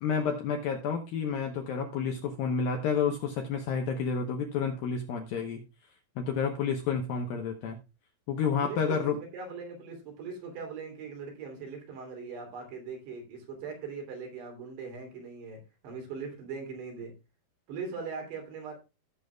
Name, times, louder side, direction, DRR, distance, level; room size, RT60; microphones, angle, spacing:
voice 1, 0.0-5.6 6.2-7.8 8.3-9.2, left 6 dB, 70° left, 4 dB, 2.3 m, -30 dB
voice 2, 8.6-17.1 17.7-18.7, right 5 dB, 65° right, 2 dB, 5.0 m, -40 dB
17.0 x 7.1 x 2.2 m, 0.26 s
omnidirectional pair, 5.3 m